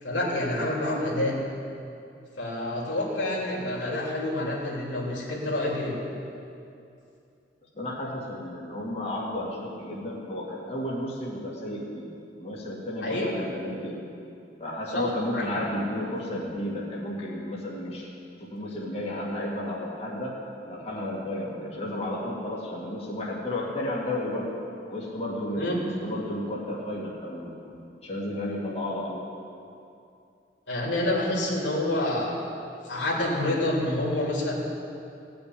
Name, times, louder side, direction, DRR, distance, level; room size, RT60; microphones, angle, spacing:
voice 1, 0.0-1.3 2.4-5.9 13.0-13.3 14.9-15.1 15.3-15.6 25.6-25.8 30.7-32.4 32.8-34.6, left 1 dB, 85° left, -4 dB, 3.3 m, -28 dB
voice 2, 7.8-14.0 14.6-18.1 18.4-20.4 20.7-24.6 24.9-29.2, left 1 dB, 35° left, -5 dB, 2.2 m, -33 dB
17.0 x 6.4 x 9.9 m, 2.6 s
head